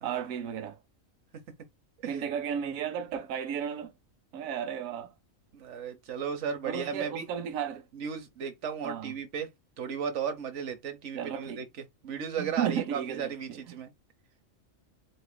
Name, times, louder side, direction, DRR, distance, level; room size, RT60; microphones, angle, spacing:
voice 1, 0.0-0.8 2.1-3.9 4.3-5.1 6.7-7.9 8.8-9.2 11.1-11.6 12.4-13.6, right 8 dB, 90° right, 1.1 m, -34 dB
voice 2, 5.5-7.3 7.9-9.5 9.8-11.7 12.0-13.9, right 7 dB, 65° right, 1.2 m, -35 dB
7.8 x 2.7 x 2.2 m
omnidirectional pair, 1.4 m